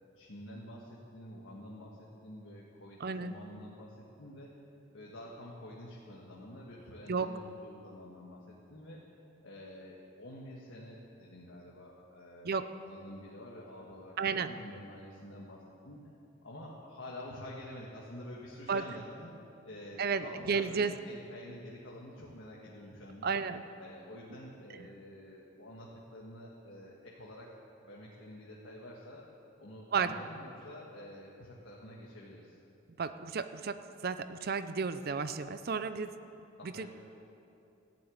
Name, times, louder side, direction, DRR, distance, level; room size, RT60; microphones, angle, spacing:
voice 1, 0.1-4.6 4.9-16.0 16.4-23.4 23.8-27.5 27.8-29.2 29.6-32.6 36.6-36.9, left 1 dB, 70° left, -4 dB, 1.6 m, -48 dB
voice 2, 3.0-3.3 7.1-7.3 12.4-12.7 14.2-14.5 18.7-18.8 20.0-20.9 23.2-23.6 29.9-30.1 33.0-36.1 36.6-36.9, right 5 dB, 50° right, 11 dB, 0.5 m, -33 dB
14.5 x 7.5 x 9.4 m, 2.8 s
head